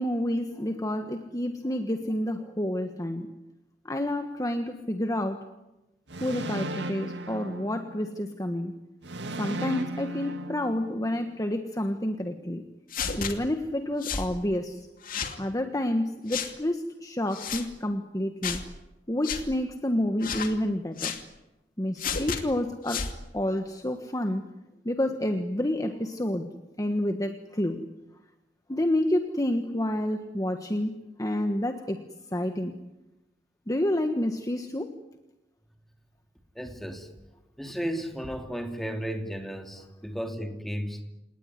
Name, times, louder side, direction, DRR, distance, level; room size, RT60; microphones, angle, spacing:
voice 1, 0.0-3.3 3.8-5.4 6.2-8.7 9.4-12.6 13.2-14.9 15.4-18.6 19.1-21.1 21.8-24.4 24.8-26.5 26.8-27.8 28.7-32.0 32.3-32.8 33.7-34.9, left 1 dB, 20° left, 6 dB, 1.4 m, -29 dB
sound 1, 6.1-8.3 9.0-11.2, right 1 dB, 75° right, 2.2 m, -36 dB
sound 2, 12.9-13.3 14.0-14.3 15.0-15.4 16.3-16.5 17.3-17.7 18.4-18.7 19.2-19.4 20.2-20.5 21.0-21.2 22.0-22.4 22.9-23.2, left 6 dB, 50° left, 2.6 m, -31 dB
voice 2, 36.5-37.1 37.6-41.0, equal, ahead, 4 dB, 3.0 m, -34 dB
28.0 x 19.5 x 9.8 m, 0.99 s
head